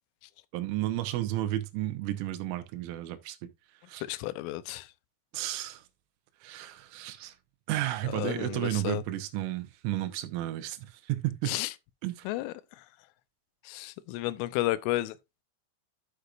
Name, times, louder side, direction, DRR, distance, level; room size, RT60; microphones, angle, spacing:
voice 1, 0.5-3.5 3.9-4.0 5.3-5.8 6.4-7.3 7.7-11.5 12.0-12.3, right 14 dB, 80° right, 3.4 m, -32 dB
voice 2, 4.0-4.9 8.0-9.0 11.5-11.7 12.2-12.8 13.6-15.2, left 17 dB, 85° left, 3.1 m, -32 dB
12.0 x 6.4 x 2.5 m
omnidirectional pair, 6.0 m